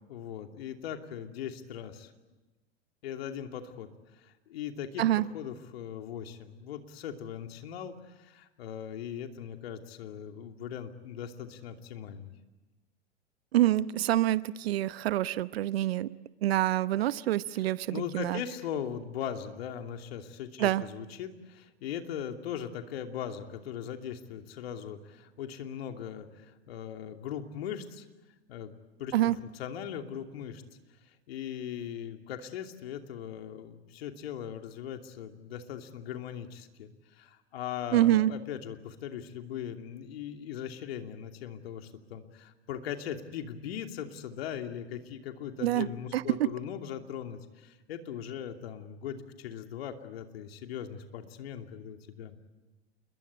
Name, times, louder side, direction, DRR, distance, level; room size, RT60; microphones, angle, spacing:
voice 1, 0.1-2.1 3.0-3.9 4.2-5.0 5.3-12.3 17.5-28.1 28.5-28.7 29.0-30.6 31.1-52.4, left 9 dB, 60° left, 5 dB, 2.8 m, -39 dB
voice 2, 13.5-16.1 16.4-18.4 20.6-20.8 29.1-29.4 37.9-38.3 45.6-45.9 46.1-46.4, right 14 dB, 60° right, 17 dB, 0.9 m, -26 dB
29.0 x 22.0 x 8.4 m, 1.1 s
figure-of-eight pair, 100°, 34 cm